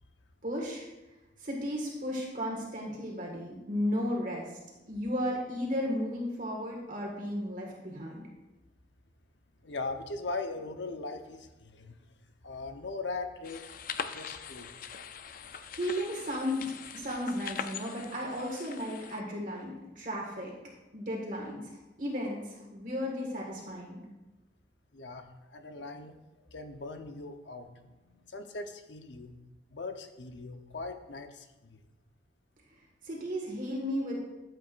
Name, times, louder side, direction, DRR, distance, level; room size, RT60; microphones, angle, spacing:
voice 1, 0.4-0.9 1.4-4.6 4.9-8.2 15.7-20.5 20.9-24.0 33.0-34.2, equal, 45° right, -1 dB, 1.8 m, -34 dB
voice 2, 9.6-11.9 12.4-13.7 14.1-14.8 24.9-26.2 26.5-29.3 29.7-31.8, left 3 dB, 85° left, 6 dB, 0.9 m, -40 dB
sound 1, 13.4-19.2, left 7 dB, 50° left, 0.5 m, -42 dB
13.5 x 8.0 x 2.5 m, 1.0 s
head